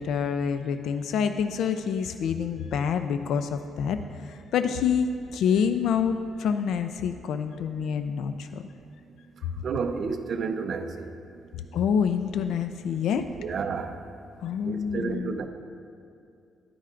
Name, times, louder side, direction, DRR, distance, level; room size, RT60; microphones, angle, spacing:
voice 1, 0.0-8.6 11.5-13.3 14.4-15.4, left 7 dB, 75° left, 9 dB, 0.3 m, -27 dB
voice 2, 9.6-11.1 13.1-13.9 14.6-15.5, right 5 dB, 50° right, 7 dB, 0.6 m, -31 dB
12.5 x 9.9 x 2.5 m, 2.5 s
cardioid pair, 135°, 0 cm